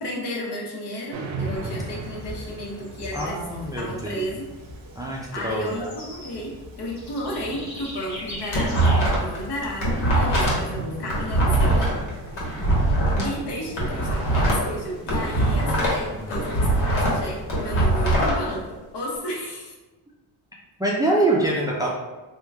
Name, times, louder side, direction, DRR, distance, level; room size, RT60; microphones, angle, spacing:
voice 1, 0.0-3.4 3.7-4.5 5.3-12.3 13.2-19.8, equal, 65° left, -3 dB, 1.0 m, -33 dB
sound 1, 1.1-18.9, right 3 dB, 85° right, 0.6 m, -40 dB
Bird / Insect, 1.5-10.1, left 1 dB, 35° left, 1.3 m, -41 dB
voice 2, 3.1-4.3 5.0-5.9 16.2-16.6 20.8-21.9, right 2 dB, 10° right, -3 dB, 0.4 m, -25 dB
sound 2, 8.3-9.4 9.7-13.2 13.7-16.0 16.3-18.3, right 1 dB, 85° left, 1.2 m, -22 dB
2.9 x 2.3 x 3.4 m, 1.2 s
cardioid pair, 100°, 45 cm